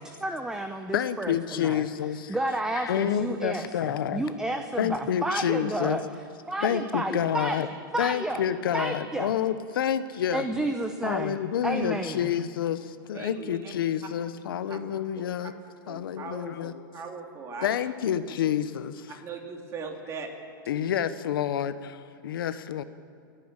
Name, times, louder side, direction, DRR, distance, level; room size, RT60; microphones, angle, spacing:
voice 1, 0.0-1.8 2.3-6.0 6.5-8.4 8.7-9.3 10.3-11.4 11.6-12.3, right 2 dB, 5° right, 6 dB, 0.8 m, -31 dB
voice 2, 0.9-2.4 2.8-4.2 4.8-6.0 6.6-7.7 8.0-10.4 11.0-15.5 15.9-16.8 17.6-19.2 20.7-22.8, left 9 dB, 85° left, 13 dB, 1.0 m, -28 dB
voice 3, 13.1-13.7 14.7-14.8 15.4-15.5 15.9-17.7 19.2-20.3, right 5 dB, 25° right, 3 dB, 2.6 m, -39 dB
29.5 x 10.0 x 8.9 m, 2.3 s
supercardioid pair, 145°, 12 cm